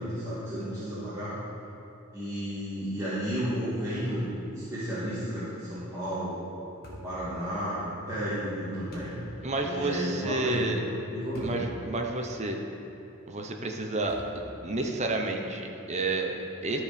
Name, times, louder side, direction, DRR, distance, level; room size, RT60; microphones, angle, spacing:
voice 1, 0.0-1.3 2.1-4.3 4.5-6.3 6.8-9.2 9.6-11.6, equal, 15° right, -13 dB, 2.0 m, -32 dB
sound 1, 6.8-7.2 8.9-9.2 11.3-11.6 12.2-12.3 14.1-14.6, equal, 45° left, 1.7 m, -45 dB
voice 2, 9.4-10.8 11.4-12.6 13.3-16.8, right 2 dB, 30° right, 2 dB, 0.7 m, -30 dB
12.5 x 4.7 x 5.1 m, 2.9 s
head